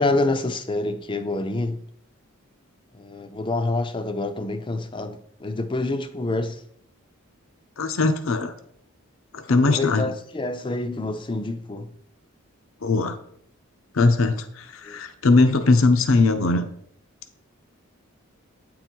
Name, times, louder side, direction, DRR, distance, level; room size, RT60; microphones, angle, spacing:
voice 1, 0.0-1.8 2.9-6.6 9.5-11.9 14.8-15.0, left 2 dB, 20° left, 0.4 m, -27 dB
voice 2, 7.8-8.5 9.3-10.1 12.8-13.2 13.9-16.7, left 3 dB, 70° left, 0.6 m, -20 dB
9.1 x 3.9 x 4.5 m
head